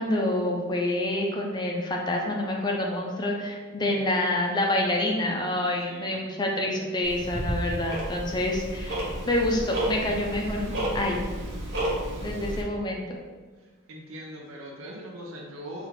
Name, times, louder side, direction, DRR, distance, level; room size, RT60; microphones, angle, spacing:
voice 1, 0.0-11.2 12.2-13.2, left 1 dB, 20° left, 0 dB, 0.4 m, -27 dB
voice 2, 5.8-6.2 13.6-15.9, equal, 80° right, -1 dB, 0.6 m, -41 dB
Tick-tock, 7.0-12.6, equal, 55° right, 0.9 m, -32 dB
4.6 x 2.5 x 3.2 m, 1.4 s
head